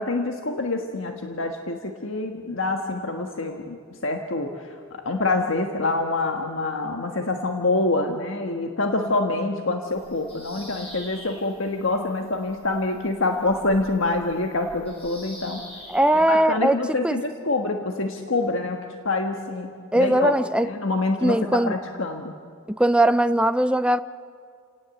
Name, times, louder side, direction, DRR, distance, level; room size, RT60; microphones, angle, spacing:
voice 1, 0.0-15.6 16.1-20.4 20.6-22.3, left 2 dB, 65° left, 1.5 m, -26 dB
Bird vocalization bird call bird song, 9.9-16.3, equal, 30° left, 6.2 m, -45 dB
voice 2, 15.9-16.8 17.0-17.2 19.9-20.7 21.2-21.7 22.7-24.0, right 1 dB, 5° right, 0.6 m, -20 dB
30.0 x 18.0 x 8.4 m
head